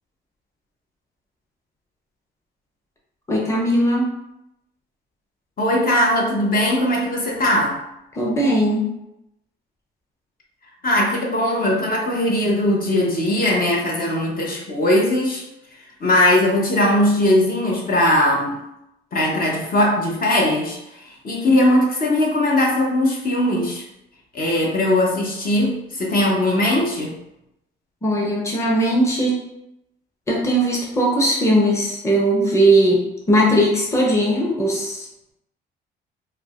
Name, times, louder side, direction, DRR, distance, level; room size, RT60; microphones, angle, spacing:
voice 1, 3.3-4.1 8.1-8.9 28.0-29.4 30.3-35.3, right 1 dB, 15° left, -3 dB, 0.8 m, -19 dB
voice 2, 5.6-7.8 10.8-15.4 16.0-18.6 19.1-20.8 21.0-23.8 24.3-27.1, left 1 dB, 45° left, -2 dB, 0.8 m, -19 dB
4.5 x 2.1 x 2.4 m, 0.86 s
cardioid pair, 90°, 20 cm